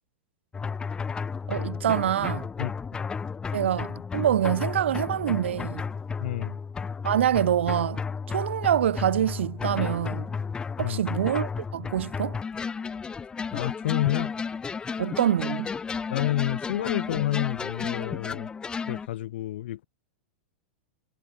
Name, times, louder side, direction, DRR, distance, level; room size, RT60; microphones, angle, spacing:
sound 1, 0.5-19.1, left 5 dB, 15° left, 3.3 m, -33 dB
voice 1, 1.5-2.5 3.5-5.8 7.0-8.0 8.3-10.3 10.8-12.4 15.0-15.7, right 11 dB, 85° right, 0.9 m, -25 dB
voice 2, 6.2-6.6 10.8-11.1 13.5-14.3 14.8-15.0 16.1-18.5 18.9-19.8, left 14 dB, 70° left, 5.3 m, -29 dB
supercardioid pair, 140°, 6 cm